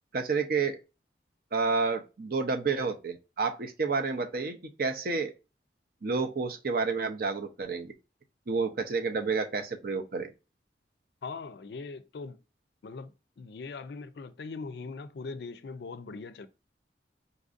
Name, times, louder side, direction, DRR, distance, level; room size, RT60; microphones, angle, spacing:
voice 1, 0.1-0.8 1.5-5.3 6.0-7.9 8.5-10.3, right 4 dB, 55° right, 0.5 m, -30 dB
voice 2, 11.2-12.4 12.8-16.5, left 4 dB, 65° left, 0.4 m, -41 dB
4.1 x 2.6 x 2.4 m
head